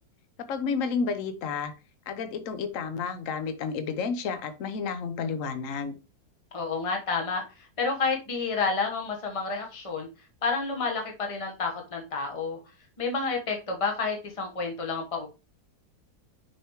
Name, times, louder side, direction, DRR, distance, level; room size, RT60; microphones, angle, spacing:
voice 1, 0.5-1.7 2.1-5.9, left 5 dB, 60° left, 10 dB, 1.2 m, -31 dB
voice 2, 6.5-10.1 10.4-12.6 13.0-15.3, left 4 dB, 25° left, 2 dB, 1.2 m, -30 dB
6.7 x 5.6 x 3.1 m, 0.30 s
omnidirectional pair, 1.7 m